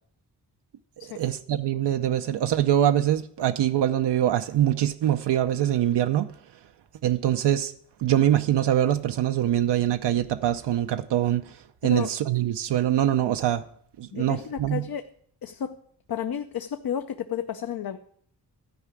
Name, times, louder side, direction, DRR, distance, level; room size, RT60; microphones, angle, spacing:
voice 1, 1.1-6.3 7.0-7.7 8.0-11.4 11.8-13.6 14.0-14.8, right 11 dB, 85° right, 0.7 m, -23 dB
voice 2, 14.1-15.1 15.4-15.7 16.1-18.0, left 9 dB, 60° left, 0.7 m, -32 dB
13.0 x 4.9 x 8.3 m
cardioid pair, 75°, 40 cm